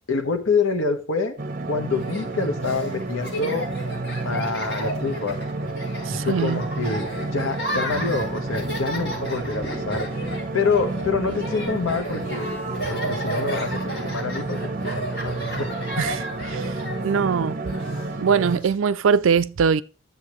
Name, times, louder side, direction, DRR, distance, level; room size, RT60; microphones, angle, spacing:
voice 1, 0.1-1.4 1.7-3.6 4.2-5.4 6.1-10.1 10.3-12.6 12.9-14.6 14.9-15.7, left 4 dB, 80° left, 1.3 m, -26 dB
sound 1, 1.4-18.6, right 2 dB, 40° right, 0.8 m, -31 dB
Laughter, 1.9-18.7, equal, 60° left, 5.6 m, -34 dB
Thunder, 3.2-18.0, equal, 15° left, 1.3 m, -44 dB
voice 2, 6.1-6.6 16.0-16.7 17.0-17.6 18.2-19.8, right 6 dB, 75° right, 0.4 m, -22 dB
12.0 x 7.6 x 3.2 m
head